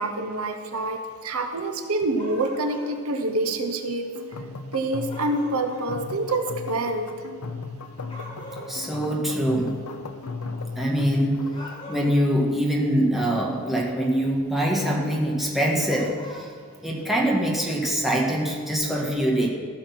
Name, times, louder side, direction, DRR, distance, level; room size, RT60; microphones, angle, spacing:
voice 1, 0.0-4.1 4.7-7.1, right 2 dB, 70° right, 5 dB, 0.9 m, -26 dB
sound 1, 2.2-3.0 5.1-6.0 8.1-8.7 11.4-12.2 15.9-16.4, equal, 20° left, 2.0 m, -41 dB
sound 2, 4.2-11.7, left 4 dB, 90° left, 0.8 m, -36 dB
voice 2, 8.7-9.7 10.8-11.4 11.9-16.5 16.8-19.5, equal, ahead, -3 dB, 1.6 m, -24 dB
15.0 x 6.6 x 5.9 m, 2.1 s
head